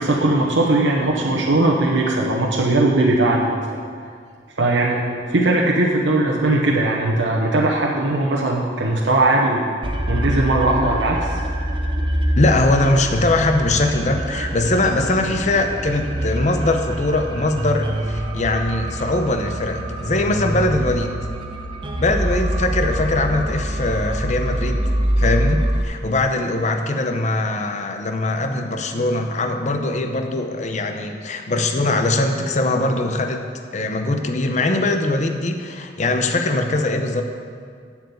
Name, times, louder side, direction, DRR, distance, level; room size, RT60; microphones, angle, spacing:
voice 1, 0.0-3.8 4.6-9.7 10.1-11.4, right 2 dB, 80° right, -3 dB, 1.0 m, -19 dB
sound 1, 9.8-25.8, right 1 dB, 30° right, 0.8 m, -25 dB
voice 2, 12.4-21.1 22.0-24.8 25.2-33.4 33.7-37.2, left 2 dB, 40° left, 5 dB, 0.7 m, -21 dB
7.9 x 7.3 x 8.4 m, 2.1 s
head